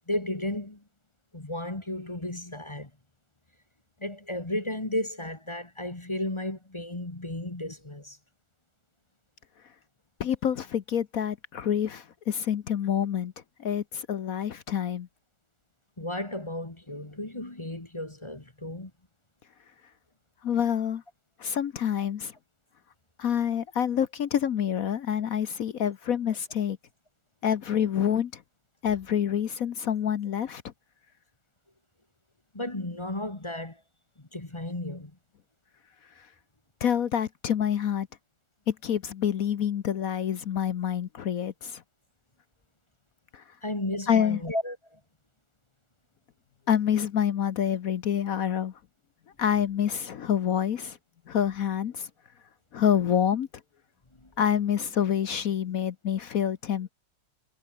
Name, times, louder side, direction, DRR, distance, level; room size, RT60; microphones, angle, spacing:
voice 1, 0.1-0.8 1.3-2.9 4.0-8.2 16.0-18.9 32.5-33.8 34.2-35.1 43.6-45.0 54.2-54.3, left 1 dB, 15° left, 1.6 m, -34 dB
voice 2, 10.2-13.3 13.6-15.1 20.4-21.0 21.4-22.3 23.2-26.8 27.4-28.4 28.8-30.6 36.2-36.3 36.8-38.1 38.7-41.8 43.3-43.4 44.1-44.4 46.7-48.7 49.4-51.0 51.3-52.1 52.7-53.5 54.4-56.9, left 9 dB, 60° left, 1.0 m, -27 dB
omnidirectional pair, 2.4 m